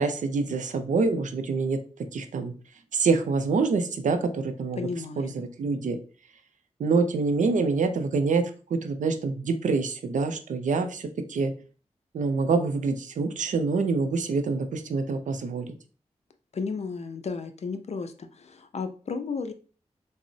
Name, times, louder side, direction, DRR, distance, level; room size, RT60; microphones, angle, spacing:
voice 1, 0.0-1.8 2.1-2.5 2.9-4.8 5.2-6.0 6.8-8.4 8.7-11.5 12.1-15.7, right 4 dB, 85° right, 8 dB, 0.4 m, -26 dB
voice 2, 4.8-5.3 16.5-19.5, left 4 dB, 60° left, 8 dB, 0.4 m, -33 dB
3.6 x 2.0 x 2.6 m, 0.38 s
cardioid pair, 60°, 13 cm